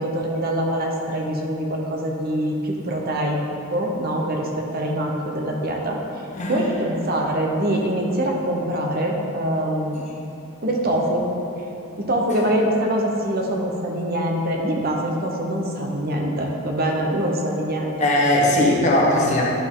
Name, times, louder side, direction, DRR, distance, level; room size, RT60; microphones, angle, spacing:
voice 1, 0.0-3.4 3.7-6.0 6.5-10.0 10.6-11.3 12.0-17.9, right 1 dB, 45° right, 0 dB, 0.7 m, -24 dB
voice 2, 6.3-6.7 12.3-12.5 18.0-19.4, left 1 dB, 30° left, -3 dB, 1.0 m, -19 dB
11.0 x 4.3 x 3.7 m, 3.0 s
head